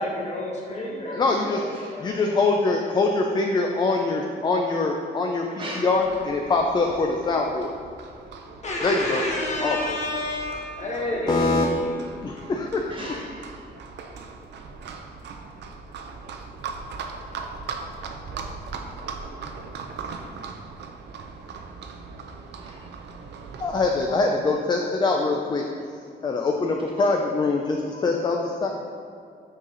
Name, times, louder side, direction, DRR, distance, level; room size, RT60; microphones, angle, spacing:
voice 1, 0.0-2.2 8.6-11.9, left 1 dB, 40° left, -3 dB, 1.4 m, -30 dB
voice 2, 1.1-1.6 2.0-5.5 5.8-7.7 8.8-9.2 9.6-10.0 11.3-11.6 12.2-12.9 23.6-25.7 26.2-28.7, left 3 dB, 25° left, 2 dB, 0.4 m, -23 dB
voice 3, 1.6-2.1 5.6-6.1 12.4-12.5 12.9-13.4 22.6-23.5 25.8-26.3 27.0-27.2, right 1 dB, 30° right, -3 dB, 1.2 m, -40 dB
Livestock farm animals working animals, 5.9-24.0, right 5 dB, 80° right, 0.6 m, -39 dB
6.3 x 5.8 x 3.9 m, 2.4 s
wide cardioid pair, 160°, 18 cm